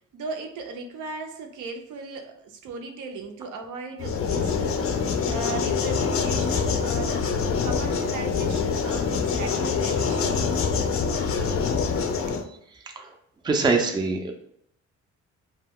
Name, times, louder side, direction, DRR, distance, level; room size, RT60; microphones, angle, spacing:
voice 1, 0.1-5.0 5.3-7.3 7.6-10.5 12.3-12.4, right 4 dB, 75° right, 4 dB, 0.5 m, -37 dB
sound 1, 4.0-12.4, left 5 dB, 50° left, 0.4 m, -25 dB
voice 2, 11.2-11.6 13.0-13.1 13.4-14.3, right 3 dB, 15° right, 3 dB, 0.4 m, -24 dB
2.2 x 2.2 x 3.4 m, 0.72 s
cardioid pair, 90°, 30 cm